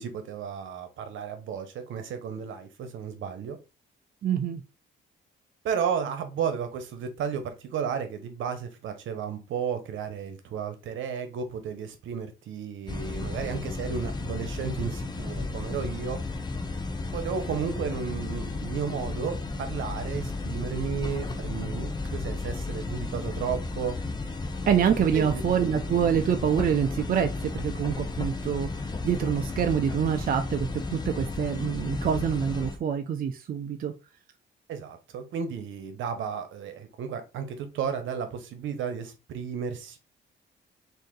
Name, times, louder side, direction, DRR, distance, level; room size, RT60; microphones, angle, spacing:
voice 1, 0.0-3.6 5.6-16.2 17.1-24.0 25.1-25.4 34.7-40.0, right 7 dB, 75° right, 8 dB, 0.9 m, -33 dB
voice 2, 4.2-4.6 24.7-28.7 29.0-33.9, right 8 dB, 45° right, 6 dB, 0.5 m, -26 dB
sound 1, 12.9-32.8, left 3 dB, 20° left, 0.7 m, -33 dB
3.8 x 2.8 x 3.7 m, 0.29 s
cardioid pair, 90°, 20 cm